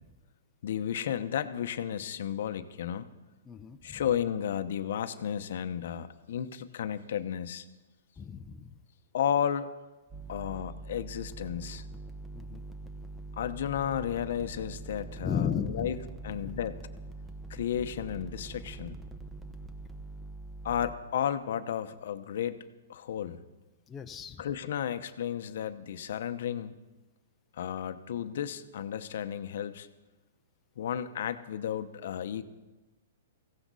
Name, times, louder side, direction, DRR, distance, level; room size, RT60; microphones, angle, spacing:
voice 1, 0.6-3.1 3.8-7.6 9.1-9.7 10.3-11.8 13.4-16.0 16.2-16.8 17.5-19.0 20.6-22.6 22.9-23.4 24.4-26.8 27.5-29.9 30.8-32.4, left 9 dB, 65° left, 11 dB, 0.9 m, -33 dB
voice 2, 3.5-4.1 8.2-8.8 10.2-10.3 12.3-12.6 15.2-15.9 16.3-16.6 23.9-24.4, left 7 dB, 15° left, 5 dB, 0.7 m, -35 dB
sound 1, 10.1-21.0, right 3 dB, 10° right, 1.1 m, -43 dB
16.5 x 15.5 x 4.1 m, 1.1 s
hypercardioid pair, 145°, 0 cm